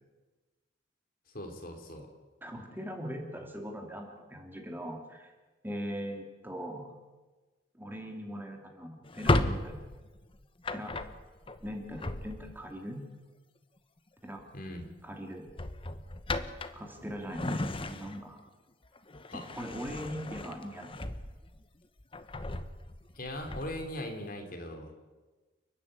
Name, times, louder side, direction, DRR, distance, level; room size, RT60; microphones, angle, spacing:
voice 1, 1.3-2.1 14.5-14.9 19.3-19.4 23.1-24.9, left 1 dB, 55° left, 4 dB, 3.2 m, -39 dB
voice 2, 2.4-5.3 5.6-6.9 7.7-9.8 10.7-11.1 11.6-13.0 14.2-14.4 15.0-15.4 16.7-18.4 19.6-21.0, equal, 10° right, 2 dB, 2.7 m, -40 dB
Drawer open or close, 9.0-12.7 14.2-14.5 14.8-15.0 15.5-18.4 18.8-21.6 22.0-23.9, left 2 dB, 30° left, 1.1 m, -35 dB
30.0 x 10.0 x 8.8 m, 1.3 s
head